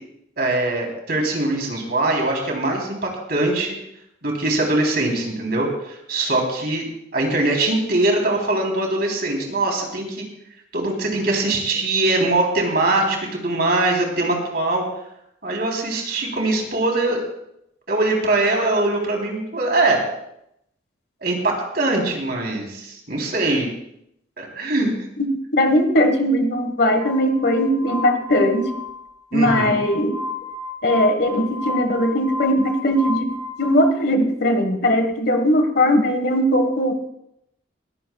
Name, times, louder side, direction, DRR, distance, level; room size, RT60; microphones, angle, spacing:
voice 1, 0.4-3.8 4.2-6.9 7.1-10.2 10.7-14.8 15.4-17.2 17.9-20.0 21.2-23.7 24.4-24.9 29.3-29.8, right 2 dB, 55° right, 1 dB, 3.6 m, -22 dB
voice 2, 25.5-28.7 29.3-30.2 30.8-33.3 33.6-36.9, equal, 60° left, 7 dB, 1.5 m, -19 dB
Glass, 27.0-33.7, left 3 dB, 15° right, 3.5 m, -32 dB
20.5 x 15.0 x 2.3 m, 0.79 s
head